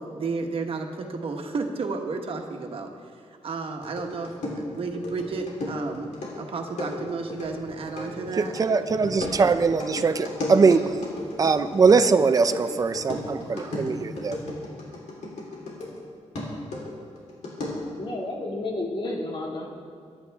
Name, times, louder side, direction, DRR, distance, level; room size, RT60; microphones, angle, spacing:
voice 1, 0.0-2.9 3.4-6.1 6.3-8.5, right 4 dB, 55° right, 3 dB, 1.4 m, -32 dB
sound 1, 3.8-16.0 16.3-18.0, left 1 dB, 85° left, 3.8 m, -35 dB
voice 2, 8.3-10.8 11.4-14.4, right 5 dB, 30° right, 10 dB, 0.5 m, -21 dB
voice 3, 18.0-19.7, left 2 dB, 45° left, -1 dB, 2.2 m, -31 dB
23.5 x 10.5 x 3.6 m, 2.3 s
wide cardioid pair, 165°, 12 cm